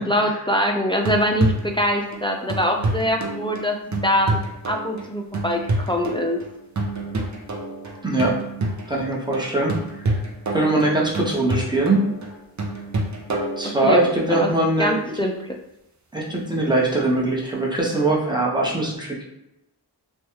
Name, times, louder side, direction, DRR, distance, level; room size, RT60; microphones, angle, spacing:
voice 1, 0.0-4.4 4.7-6.4 13.6-14.5 14.8-15.6, equal, 15° left, 2 dB, 0.3 m, -23 dB
sound 1, 0.9-14.3 17.8-17.9, right 2 dB, 45° right, 0.6 m, -28 dB
voice 2, 8.0-8.3 8.9-9.8 10.5-12.1 13.6-15.0 16.1-19.2, right 2 dB, 10° right, -3 dB, 0.8 m, -21 dB
3.2 x 2.2 x 2.8 m, 0.85 s
wide cardioid pair, 55°, 42 cm